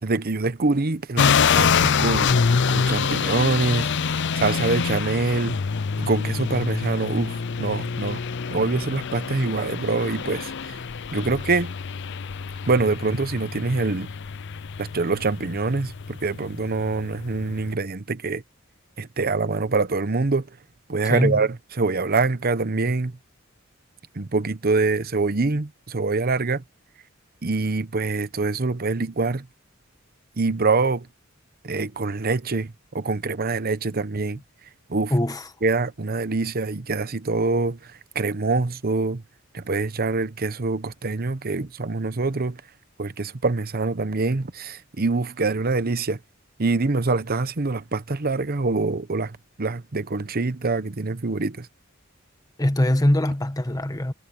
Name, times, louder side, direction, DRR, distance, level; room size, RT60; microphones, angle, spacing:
voice 1, 0.0-2.4 2.7-5.6 6.0-8.2 8.5-10.8 11.1-11.7 12.6-14.1 14.8-18.4 19.0-20.5 20.9-23.1 24.1-26.6 27.4-29.5 30.4-31.1 31.6-34.4 34.9-35.1 35.6-39.2 39.5-42.6 43.0-46.2 46.6-51.7, right 3 dB, 50° right, 0.9 m, -25 dB
sound 1, 1.2-17.7, left 6 dB, 60° left, 0.6 m, -26 dB
voice 2, 21.0-21.5 35.1-35.5 52.6-54.1, left 1 dB, 20° left, 1.4 m, -22 dB
head